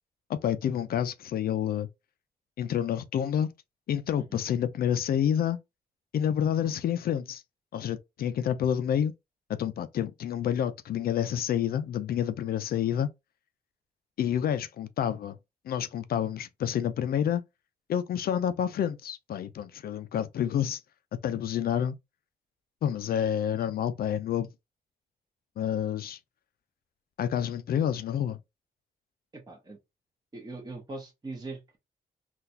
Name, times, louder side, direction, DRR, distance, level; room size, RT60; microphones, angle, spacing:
voice 1, 0.3-1.9 2.6-3.5 3.9-5.6 6.1-7.4 7.7-9.1 9.6-13.1 14.2-15.4 15.7-17.4 17.9-20.8 21.2-22.0 22.8-24.5 25.6-26.2 27.2-28.4, left 9 dB, 70° left, 0.4 m, -28 dB
voice 2, 29.3-29.8 30.3-31.8, right 3 dB, 25° right, 1.1 m, -41 dB
3.8 x 2.4 x 2.7 m
cardioid pair, 80°, 17 cm